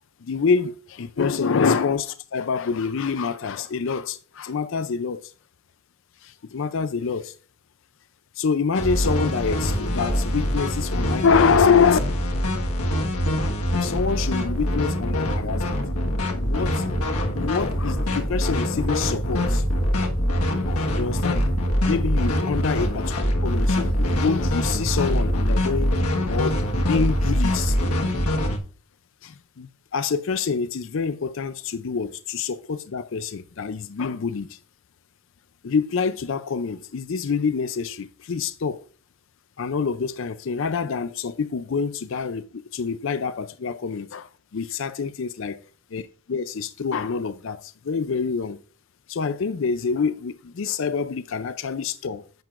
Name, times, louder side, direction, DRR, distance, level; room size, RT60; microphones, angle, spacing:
voice 1, 0.2-5.3 6.2-7.4 8.4-12.0 13.7-15.8 16.4-16.8 17.3-19.6 20.5-21.5 21.9-26.0 26.3-27.8 29.2-34.6 35.6-38.8 39.6-45.6 45.9-48.6 49.1-52.3, left 5 dB, 60° left, 0.4 m, -26 dB
sound 1, 8.7-28.6, equal, 85° left, 1.5 m, -24 dB
10.5 x 7.7 x 2.5 m
head